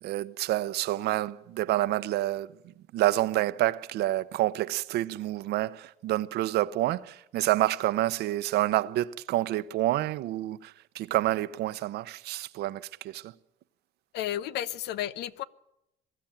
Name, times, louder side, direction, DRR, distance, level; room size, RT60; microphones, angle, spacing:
voice 1, 0.0-2.5 2.9-13.3, right 15 dB, 75° right, 0.9 m, -28 dB
voice 2, 14.1-15.4, left 12 dB, 80° left, 0.9 m, -32 dB
22.5 x 13.0 x 8.9 m
cardioid pair, 110°, 17 cm